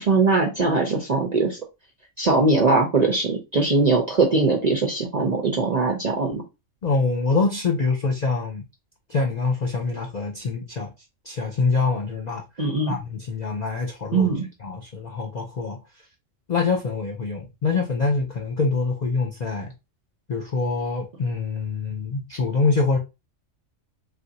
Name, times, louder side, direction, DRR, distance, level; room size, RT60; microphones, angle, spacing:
voice 1, 0.0-1.6 2.2-6.4 12.6-13.0 14.1-14.5, right 3 dB, 50° right, 0.5 m, -21 dB
voice 2, 6.8-8.7 9.1-10.9 11.2-12.4 12.9-14.3 14.6-15.8 16.5-19.7 20.3-23.0, left 4 dB, 60° left, 0.4 m, -25 dB
3.4 x 2.5 x 2.6 m
omnidirectional pair, 1.4 m